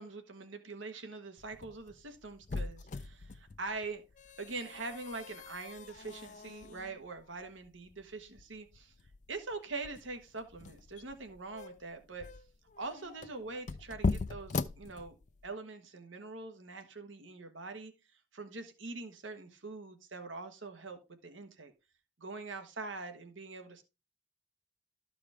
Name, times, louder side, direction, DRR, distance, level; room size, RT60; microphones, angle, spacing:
voice 1, 0.0-4.0 4.4-8.9 9.3-12.3 12.8-15.2 15.4-17.9 18.3-21.7 22.2-23.8, right 3 dB, 85° right, 7 dB, 1.3 m, -43 dB
sound 1, 1.4-15.5, left 3 dB, 40° left, 0.4 m, -41 dB
13.0 x 4.9 x 3.5 m, 0.27 s
head